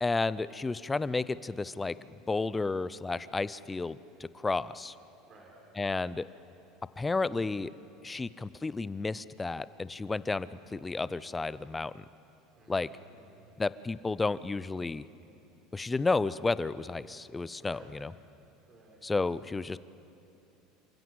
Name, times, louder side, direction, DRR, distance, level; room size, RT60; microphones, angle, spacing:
voice 1, 0.0-1.9 2.3-4.9 5.8-6.3 7.0-7.7 8.0-12.0 12.7-12.9 13.6-15.1 15.7-18.1 19.0-19.8, left 3 dB, 10° left, 17 dB, 0.4 m, -32 dB
voice 2, 12.6-13.6 17.6-18.0 18.7-19.0, right 2 dB, 30° right, 0 dB, 3.8 m, -56 dB
27.5 x 15.5 x 7.9 m, 2.7 s
cardioid pair, 160°, 0 cm